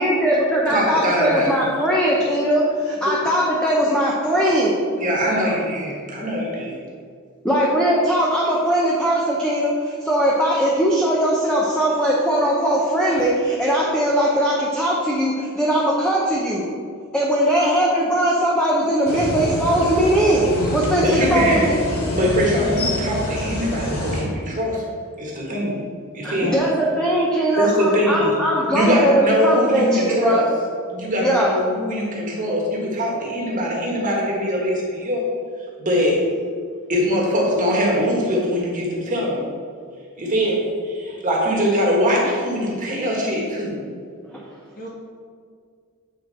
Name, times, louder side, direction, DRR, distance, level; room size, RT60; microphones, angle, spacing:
voice 1, 0.0-4.7 7.4-16.7 17.1-21.7 26.2-30.4 31.2-31.5 44.3-44.4, right 1 dB, 5° left, -5 dB, 0.7 m, -20 dB
voice 2, 0.7-1.5 5.0-6.7 21.0-21.7 22.1-24.9 25.2-25.8 26.1-26.5 27.6-28.4 28.7-30.5 30.9-35.2 35.8-36.2 36.9-39.5 40.2-43.8, equal, 35° right, -3 dB, 1.5 m, -22 dB
voice 3, 4.2-4.6 5.3-5.6 26.2-26.6 44.8-44.9, left 1 dB, 40° left, -2 dB, 1.3 m, -34 dB
sound 1, 19.0-24.2, left 1 dB, 70° left, 1.3 m, -26 dB
8.3 x 4.5 x 4.1 m, 2.2 s
head